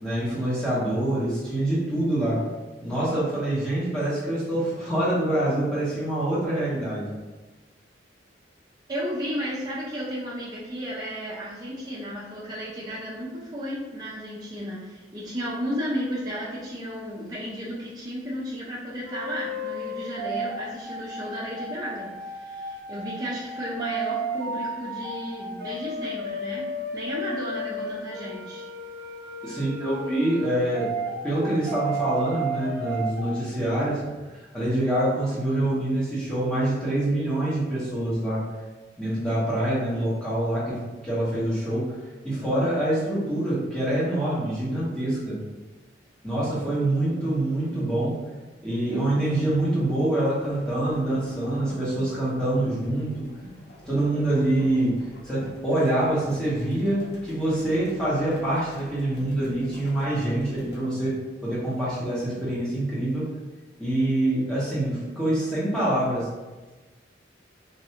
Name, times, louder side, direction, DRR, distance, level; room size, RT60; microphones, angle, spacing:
voice 1, 0.0-2.4 2.8-7.1 29.4-30.9 31.2-34.0 34.5-38.5 39.0-42.0 42.2-45.4 46.2-48.2 48.6-53.2 53.9-54.9 55.2-61.1 61.4-63.3 63.8-66.3, right 1 dB, 5° left, -9 dB, 1.1 m, -25 dB
voice 2, 8.9-26.7 26.9-28.7, equal, 20° right, -8 dB, 0.5 m, -33 dB
sound 1, 19.1-33.4, right 1 dB, 70° right, 0.5 m, -33 dB
sound 2, 50.4-60.8, equal, 65° left, 0.8 m, -46 dB
3.2 x 2.6 x 2.8 m, 1.2 s
head